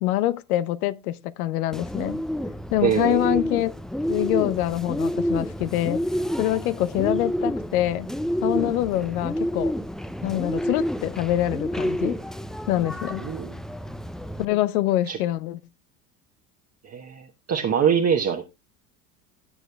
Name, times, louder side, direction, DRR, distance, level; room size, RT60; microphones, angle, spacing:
voice 1, 0.0-2.2 2.7-3.7 4.1-6.0 6.4-8.1 8.4-9.8 10.2-12.2 12.7-13.3 14.4-15.6, left 14 dB, 75° left, 0.7 m, -25 dB
Bird, 1.7-14.5, equal, ahead, 0.5 m, -29 dB
voice 2, 2.8-3.4 13.2-13.6 15.1-15.2 16.8-18.4, right 7 dB, 35° right, 1.2 m, -24 dB
17.0 x 7.9 x 2.3 m
hypercardioid pair, 70°, 44 cm